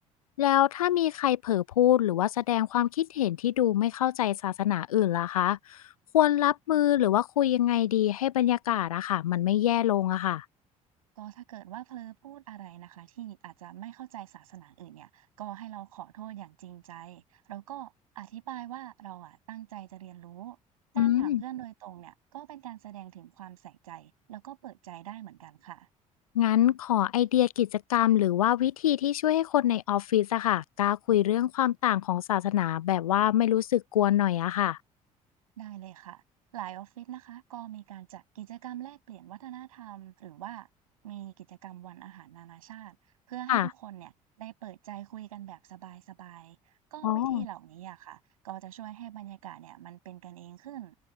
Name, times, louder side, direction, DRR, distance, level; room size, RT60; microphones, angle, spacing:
voice 1, 0.4-5.8 6.1-10.4 21.0-21.4 26.3-34.8 43.5-43.7 47.0-47.5, left 12 dB, 80° left, 0.8 m, -25 dB
voice 2, 11.2-20.6 20.9-25.9 35.6-36.2 36.5-40.7 41.0-43.0 43.3-44.1 44.4-50.9, right 13 dB, 75° right, 6.5 m, -44 dB
figure-of-eight pair, 55°, 18 cm